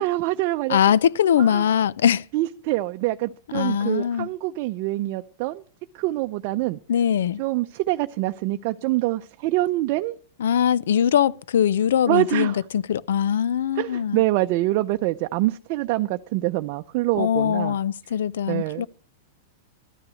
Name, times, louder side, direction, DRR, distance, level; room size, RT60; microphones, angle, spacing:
voice 1, 0.0-0.8 1.5-1.6 2.3-5.6 5.9-6.8 7.4-10.2 12.1-12.5 13.8-17.7 18.5-18.9, right 17 dB, 50° right, 0.6 m, -25 dB
voice 2, 0.7-2.2 3.5-4.3 6.9-7.4 10.4-14.2 17.1-18.9, left 9 dB, 80° left, 0.5 m, -21 dB
13.0 x 9.8 x 6.3 m
hypercardioid pair, 130°, 0 cm